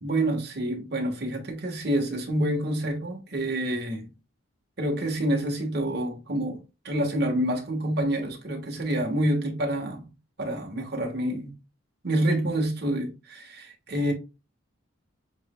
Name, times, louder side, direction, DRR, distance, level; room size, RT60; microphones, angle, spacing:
voice 1, 0.0-4.1 4.8-10.1 10.4-11.5 12.0-14.1, right 1 dB, 55° right, 1.4 m, -27 dB
7.4 x 3.2 x 2.2 m
head